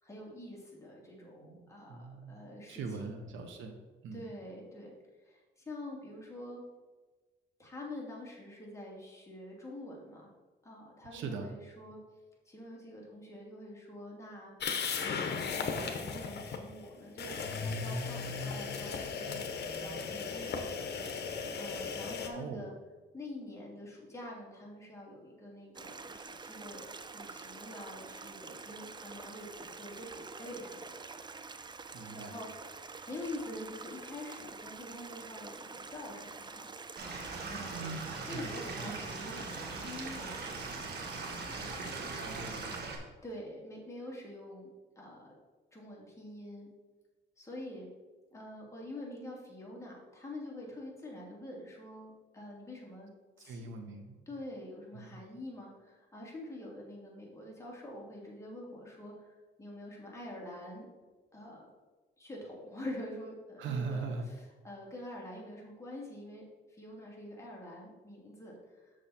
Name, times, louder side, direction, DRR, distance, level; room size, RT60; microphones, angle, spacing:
voice 1, 0.0-3.1 4.1-4.9 5.2-6.6 7.6-10.3 10.6-12.0 12.5-20.6 21.6-22.7 23.1-31.0 32.1-36.7 37.4-37.9 38.3-40.7 41.5-42.2 43.2-44.7 45.0-45.3 45.7-46.7 47.4-47.9 48.3-53.1 53.4-53.7 54.3-60.9 61.3-61.7 62.2-68.9, left 1 dB, 15° left, -3 dB, 2.8 m, -46 dB
voice 2, 1.1-4.2 11.1-11.5 22.3-22.7 31.9-32.4 37.7-38.0 38.3-38.5 38.8-39.1 42.2-42.9 53.5-54.2 54.9-55.2 63.6-64.3, right 4 dB, 75° right, 4 dB, 1.1 m, -41 dB
sound 1, 14.6-16.6 17.2-22.3, left 5 dB, 55° left, 1.1 m, -36 dB
Stream, 25.7-42.8, right 4 dB, 20° right, 0.5 m, -47 dB
Stream / Liquid, 37.0-43.0, right 3 dB, 55° right, 1.8 m, -41 dB
7.5 x 6.7 x 4.3 m, 1.2 s
cardioid pair, 90°, 20 cm